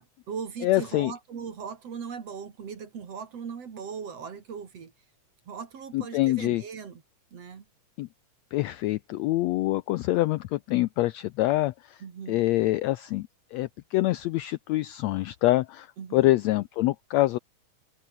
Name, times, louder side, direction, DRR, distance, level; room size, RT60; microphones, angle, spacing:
voice 1, 0.0-4.9 5.5-7.0 7.3-7.6 12.0-12.4 16.0-16.4, right 6 dB, 50° right, 3.2 m, -39 dB
voice 2, 0.6-1.1 5.9-6.6 8.0-8.1 8.5-12.0 12.3-15.9 16.1-17.4, left 17 dB, 90° left, 1.5 m, -25 dB
open air
omnidirectional pair, 3.8 m